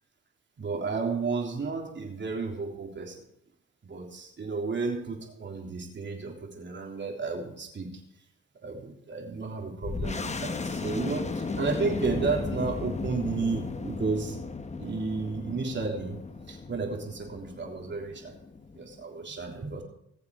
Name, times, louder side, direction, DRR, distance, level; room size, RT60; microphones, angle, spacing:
voice 1, 0.6-3.3 3.8-8.0 8.6-14.4 14.8-16.2 16.5-18.4 18.7-19.8, right 4 dB, 40° right, 1 dB, 3.4 m, -32 dB
sound 1, 9.8-19.0, left 3 dB, 20° left, 0.9 m, -35 dB
21.0 x 7.1 x 4.7 m, 0.75 s
cardioid pair, 90°, 30 cm